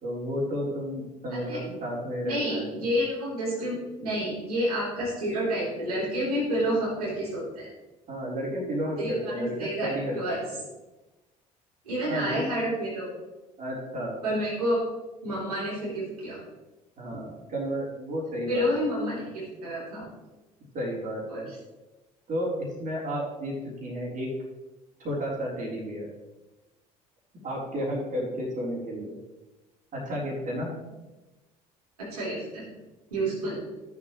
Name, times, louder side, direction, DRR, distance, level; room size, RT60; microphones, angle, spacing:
voice 1, 0.0-2.7 8.1-10.4 12.1-12.4 13.6-14.2 17.0-18.7 20.7-21.5 22.3-22.5 22.8-24.3 25.0-26.1 27.4-29.1 29.9-30.8 33.2-33.3, equal, 45° right, -4 dB, 3.8 m, -32 dB
voice 2, 2.2-7.7 9.0-10.4 11.8-13.1 14.2-14.8 15.2-16.4 17.1-17.2 18.5-20.1 21.3-21.5 32.0-32.6 33.1-33.6, equal, 85° right, -8 dB, 3.8 m, -29 dB
13.5 x 7.2 x 3.2 m, 1.1 s
figure-of-eight pair, 55°, 19 cm